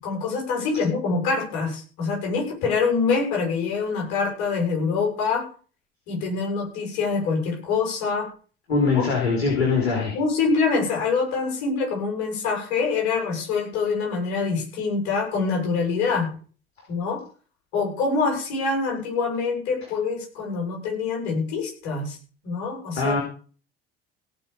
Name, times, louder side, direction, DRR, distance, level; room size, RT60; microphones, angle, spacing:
voice 1, 0.0-5.5 6.1-8.3 8.9-9.1 10.1-16.3 16.9-17.2 17.7-22.2 22.4-23.2, left 4 dB, 60° left, -1 dB, 7.8 m, -25 dB
voice 2, 8.7-10.1 23.0-23.2, left 4 dB, 80° left, -2 dB, 4.0 m, -22 dB
17.5 x 6.5 x 7.0 m, 0.40 s
figure-of-eight pair, 55°, 31 cm